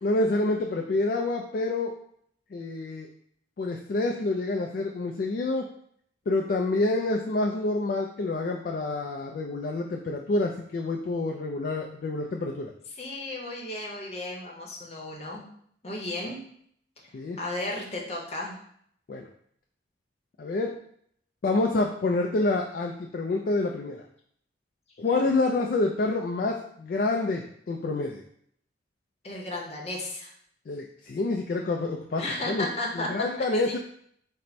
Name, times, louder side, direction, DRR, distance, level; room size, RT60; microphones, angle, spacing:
voice 1, 0.0-1.9 2.5-3.1 3.6-5.7 6.3-12.7 17.1-17.4 19.1-19.3 20.4-20.8 21.4-24.0 25.0-28.2 30.7-32.7 32.9-33.8, left 2 dB, 50° left, 2 dB, 0.3 m, -27 dB
voice 2, 12.9-15.4 15.8-16.4 17.0-18.6 29.2-30.3 32.2-33.1 33.4-33.8, left 2 dB, 35° left, -1 dB, 0.8 m, -34 dB
4.4 x 2.1 x 4.0 m, 0.66 s
head